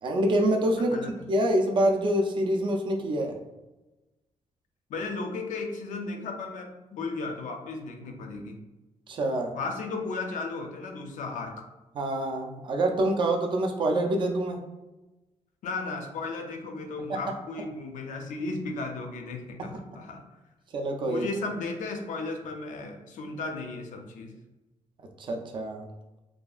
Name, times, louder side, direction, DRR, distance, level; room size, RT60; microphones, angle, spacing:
voice 1, 0.0-1.0 1.3-3.3 9.1-9.5 12.0-14.6 17.1-17.2 19.6-19.7 20.7-21.3 25.2-25.9, right 1 dB, 40° right, 3 dB, 0.3 m, -26 dB
voice 2, 0.8-1.1 4.9-8.6 9.5-11.6 15.6-20.2 21.1-24.3, left 3 dB, 80° left, 4 dB, 0.4 m, -35 dB
2.7 x 2.3 x 2.3 m, 1.0 s
wide cardioid pair, 175°, 13 cm